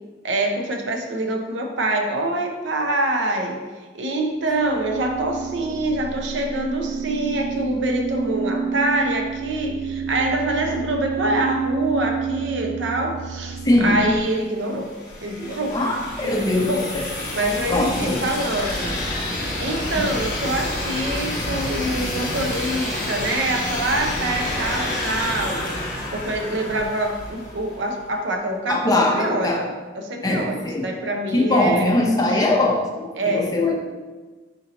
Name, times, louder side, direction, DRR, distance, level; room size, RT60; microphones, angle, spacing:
voice 1, 0.2-14.9 15.2-15.8 16.2-16.9 17.3-19.0 19.6-25.7 26.1-32.0 32.3-32.4 33.1-33.6, right 1 dB, 75° right, 3 dB, 0.6 m, -25 dB
sound 1, 4.1-14.2, right 6 dB, 30° right, 0.4 m, -29 dB
voice 2, 13.6-14.0 15.7-17.1 17.7-18.2 19.9-20.0 28.7-29.6 30.2-30.9 31.3-33.1 33.3-33.8, left 2 dB, 20° left, 0 dB, 0.5 m, -21 dB
sound 2, 14.2-27.9, left 1 dB, 45° left, 1.1 m, -29 dB
4.4 x 2.8 x 3.9 m, 1.3 s
head